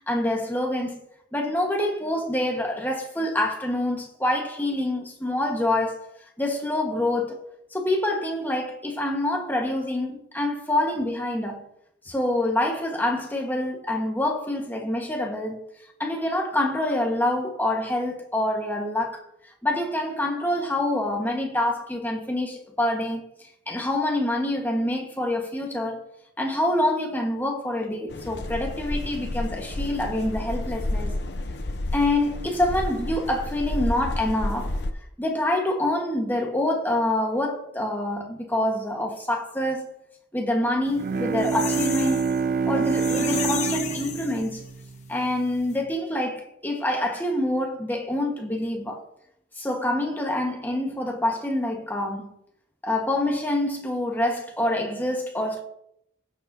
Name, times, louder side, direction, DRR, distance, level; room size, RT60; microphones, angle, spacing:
voice 1, 0.1-1.0 1.3-6.1 6.4-7.4 7.7-11.7 12.0-15.6 16.0-19.2 19.6-23.2 23.7-26.0 26.4-31.2 31.9-34.8 35.2-39.9 40.3-42.3 42.6-44.6 45.1-49.0 49.6-52.3 52.8-55.6, left 1 dB, 10° left, 1.4 m, -26 dB
sound 1, 28.1-34.9, left 1 dB, 60° left, 0.8 m, -30 dB
Bowed string instrument, 40.9-45.5, right 5 dB, 50° right, 0.3 m, -27 dB
sound 2, 41.0-44.8 45.2-45.3 45.6-45.7, left 6 dB, 40° left, 1.2 m, -33 dB
16.0 x 7.0 x 2.8 m
head